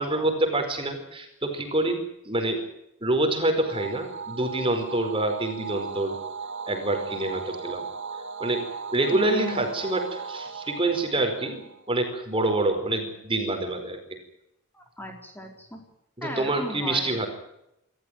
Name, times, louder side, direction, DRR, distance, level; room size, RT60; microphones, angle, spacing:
voice 1, 0.0-2.0 2.2-2.6 3.0-6.2 6.7-7.8 8.4-8.6 8.9-14.0 16.2-17.3, right 2 dB, 25° right, 5 dB, 4.8 m, -26 dB
sound 1, 3.6-12.2, right 5 dB, 60° right, 1.6 m, -37 dB
voice 2, 9.1-9.7 14.7-15.8 16.2-17.2, left 1 dB, 10° left, 3 dB, 4.1 m, -36 dB
27.0 x 14.0 x 9.4 m, 0.81 s
head